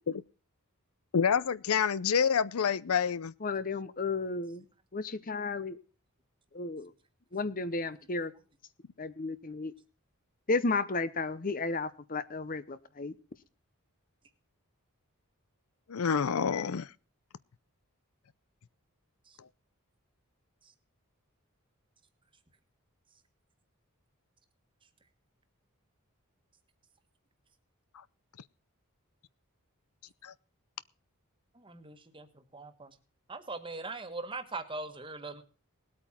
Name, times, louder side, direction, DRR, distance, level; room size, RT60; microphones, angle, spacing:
voice 1, 1.1-3.3 15.9-16.9 19.4-19.5 30.2-30.3, left 6 dB, 80° left, 0.5 m, -28 dB
voice 2, 3.4-4.6 4.9-5.8 6.5-6.9 7.3-8.3 9.0-9.7 10.5-13.1, left 3 dB, 40° left, 0.8 m, -33 dB
voice 3, 31.5-32.9 33.3-35.4, right 3 dB, 25° right, 1.5 m, -41 dB
19.5 x 8.7 x 4.4 m
head